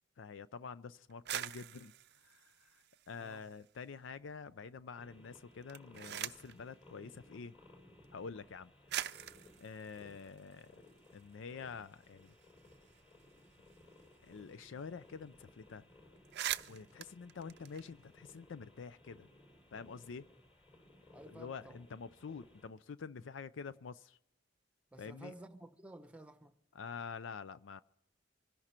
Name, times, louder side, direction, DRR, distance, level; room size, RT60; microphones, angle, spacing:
voice 1, 0.2-1.9 2.2-7.5 8.1-8.7 9.6-10.7 11.1-12.3 14.2-15.8 16.7-19.3 19.7-20.3 21.3-24.2 25.0-25.3 26.7-27.8, left 5 dB, 70° left, 0.4 m, -47 dB
sound 1, 1.1-3.7 4.0-4.7 5.5-6.6 7.6-7.7 8.5-8.6 8.9-11.2 11.6-11.7 11.9-14.5 14.8-14.9 15.2-15.5 15.8-15.9 16.2-18.4, right 12 dB, 55° right, 0.5 m, -44 dB
sound 2, 4.9-22.7, left 2 dB, 30° left, 5.8 m, -61 dB
voice 2, 21.1-21.8 24.9-26.5, right 1 dB, 5° right, 1.0 m, -53 dB
25.5 x 11.0 x 4.4 m
head